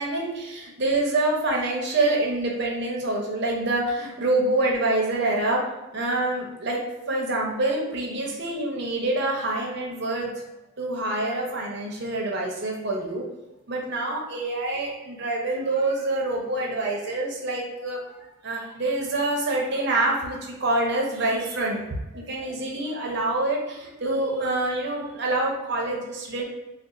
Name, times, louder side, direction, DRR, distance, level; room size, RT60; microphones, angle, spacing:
voice 1, 0.0-5.6 5.9-6.8 7.1-10.4 10.8-13.2 13.7-18.2 18.4-21.8 22.1-26.4, right 2 dB, 50° right, -1 dB, 0.7 m, -26 dB
2.4 x 2.4 x 3.7 m, 0.99 s
head